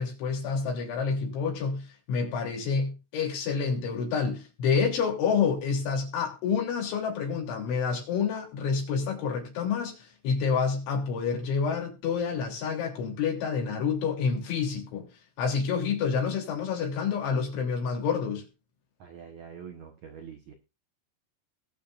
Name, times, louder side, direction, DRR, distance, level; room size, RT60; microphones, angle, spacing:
voice 1, 0.0-15.1 15.4-18.5, left 5 dB, 70° left, 5.7 m, -28 dB
voice 2, 19.0-20.5, right 7 dB, 80° right, 1.6 m, -45 dB
21.0 x 7.3 x 2.6 m
omnidirectional pair, 5.6 m